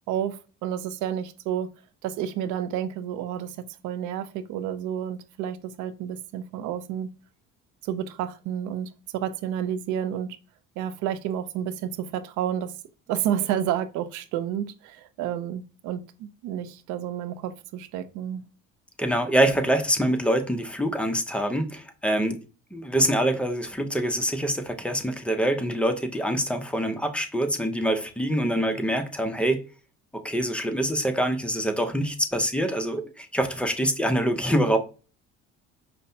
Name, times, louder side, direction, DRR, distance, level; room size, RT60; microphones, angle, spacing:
voice 1, 0.1-1.7 2.0-7.1 7.8-10.4 10.8-12.7 13.1-18.4, right 10 dB, 80° right, 0.5 m, -30 dB
voice 2, 19.0-22.4 22.7-29.6 30.2-34.8, right 1 dB, 5° left, 0.6 m, -25 dB
5.2 x 2.1 x 2.7 m
cardioid pair, 100°, 30 cm